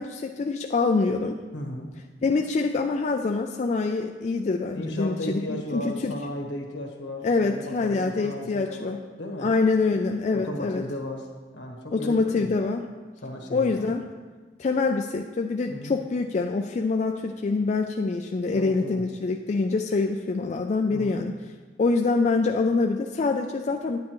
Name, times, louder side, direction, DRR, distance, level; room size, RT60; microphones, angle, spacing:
voice 1, 0.0-1.4 2.2-6.1 7.2-9.0 9.4-10.8 11.9-12.8 13.5-14.0 14.6-21.3 21.8-24.0, left 3 dB, 40° left, 3 dB, 0.3 m, -25 dB
voice 2, 1.5-1.9 4.7-9.5 10.3-11.3 11.5-12.5 13.2-13.9 15.7-15.9 18.5-19.0 20.9-21.2, left 1 dB, 75° left, 1 dB, 1.4 m, -35 dB
9.6 x 9.2 x 3.0 m, 1.3 s
head